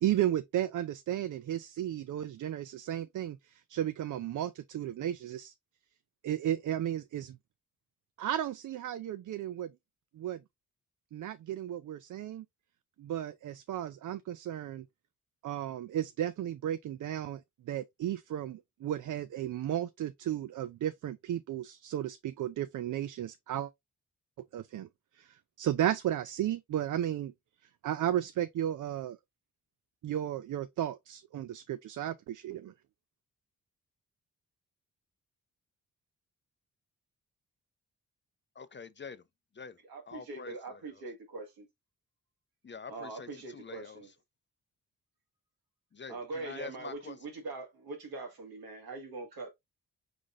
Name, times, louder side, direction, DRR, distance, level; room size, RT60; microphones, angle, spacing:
voice 1, 0.0-5.5 6.2-7.4 8.2-9.7 10.1-10.4 11.1-12.4 13.0-14.9 15.4-23.7 24.5-24.9 25.1-27.3 27.8-29.2 30.0-32.7, right 11 dB, 55° right, 0.5 m, -34 dB
voice 2, 38.6-39.2 39.5-39.8 40.1-40.8 42.6-44.0 45.9-47.2, left 5 dB, 30° left, 0.6 m, -46 dB
voice 3, 39.8-41.7 42.9-44.1 46.1-49.5, right 3 dB, 70° right, 1.8 m, -42 dB
5.0 x 3.8 x 2.4 m
supercardioid pair, 45°, 38 cm